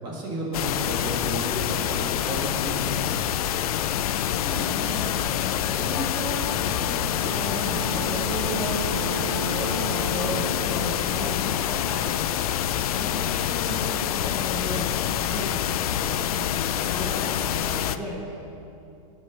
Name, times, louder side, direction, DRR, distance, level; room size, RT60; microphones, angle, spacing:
voice 1, 0.0-3.2, right 1 dB, 25° right, -2 dB, 1.8 m, -33 dB
sound 1, 0.5-18.0, left 10 dB, 90° left, 0.5 m, -26 dB
voice 2, 4.4-12.1 12.6-18.4, equal, ahead, -9 dB, 1.2 m, -35 dB
sound 2, 4.7-12.3, left 6 dB, 15° left, 0.3 m, -39 dB
sound 3, 7.2-11.7, right 6 dB, 45° right, 0.7 m, -36 dB
12.5 x 5.5 x 6.6 m, 2.8 s
supercardioid pair, 170°, 18 cm